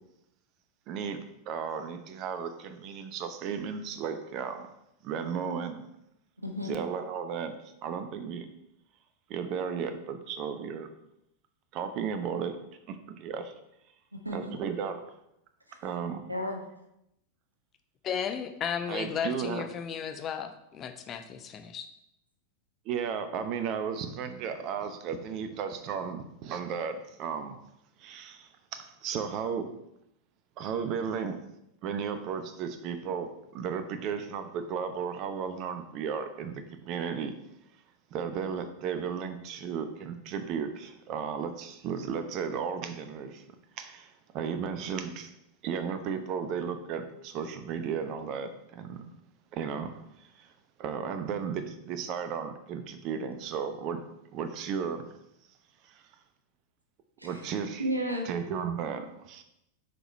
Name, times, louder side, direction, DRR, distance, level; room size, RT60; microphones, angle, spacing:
voice 1, 0.9-1.2 1.5-4.7 5.0-5.9 6.6-7.5 7.8-8.5 9.3-10.9 11.7-12.6 12.9-13.5 14.3-15.0 15.8-16.2 18.9-19.7 22.8-27.6 28.0-29.7 30.6-31.4 31.8-37.3 38.1-43.4 43.8-45.3 45.6-49.0 49.5-50.5 50.8-54.0 54.3-55.0 55.8-56.0 57.2-57.9 58.2-59.4, right 7 dB, 40° right, 9 dB, 0.8 m, -34 dB
voice 2, 6.4-6.8 14.1-14.6 15.7-15.8 16.3-16.6 57.2-57.5 57.8-58.3, equal, 85° right, 2 dB, 1.2 m, -33 dB
voice 3, 18.0-21.9, left 8 dB, 30° left, 7 dB, 0.7 m, -34 dB
6.4 x 5.0 x 4.4 m, 0.81 s
figure-of-eight pair, 90°, 0 cm